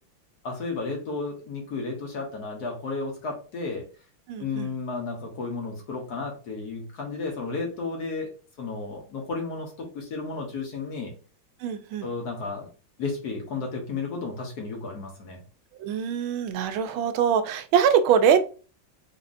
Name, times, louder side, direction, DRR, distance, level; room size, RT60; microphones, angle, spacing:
voice 1, 0.4-3.8 4.4-8.3 8.6-11.1 12.0-12.7 13.0-15.4, left 4 dB, 55° left, 1 dB, 1.4 m, -33 dB
voice 2, 4.3-4.7 11.6-12.1 15.8-18.4, right 8 dB, 85° right, 9 dB, 1.4 m, -23 dB
4.1 x 3.8 x 2.6 m, 0.37 s
omnidirectional pair, 2.2 m